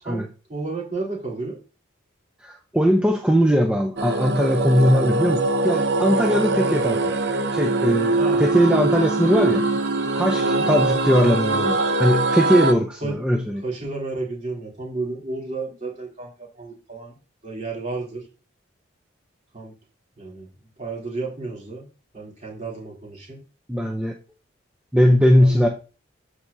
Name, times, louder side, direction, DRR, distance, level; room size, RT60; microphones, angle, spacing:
voice 1, 0.0-1.6 8.1-8.5 10.4-10.7 13.0-13.1 13.6-17.2 17.4-18.2 19.5-19.7 20.2-20.5 20.8-21.9 22.1-23.4 24.9-25.6, right 3 dB, 35° right, -4 dB, 3.0 m, -32 dB
voice 2, 2.4-7.1 7.5-9.6 10.2-13.6 23.7-24.1 24.9-25.7, equal, 5° right, 1 dB, 0.5 m, -20 dB
sound 1, 4.0-12.7, right 2 dB, 55° right, 0.7 m, -22 dB
13.5 x 4.8 x 2.7 m, 0.35 s
head